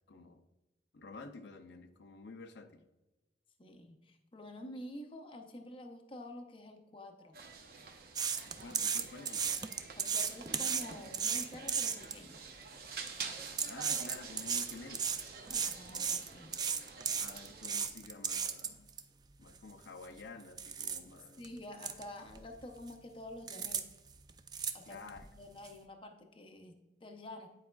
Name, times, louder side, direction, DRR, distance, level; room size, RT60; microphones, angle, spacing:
voice 1, 0.1-0.4 0.9-2.8 8.6-9.7 13.7-15.1 17.2-18.9 19.4-21.5 24.9-25.3, left 3 dB, 80° left, 6 dB, 0.5 m, -50 dB
voice 2, 3.6-7.4 10.0-12.4 15.5-16.6 21.4-23.9 24.7-25.0 25.3-27.5, left 1 dB, 30° left, 4 dB, 0.6 m, -48 dB
sound 1, 7.3-17.9, right 5 dB, 55° right, 0.8 m, -49 dB
sound 2, 8.1-12.2 12.8-13.1 13.5-19.0 19.5-19.6 20.0-20.2 20.6-21.0 21.4-21.5 21.8-22.0 22.3-22.9 23.5-23.8 24.1-25.2 25.6-25.7, right 7 dB, 25° right, 0.3 m, -35 dB
9.7 x 4.8 x 2.3 m, 1.1 s
head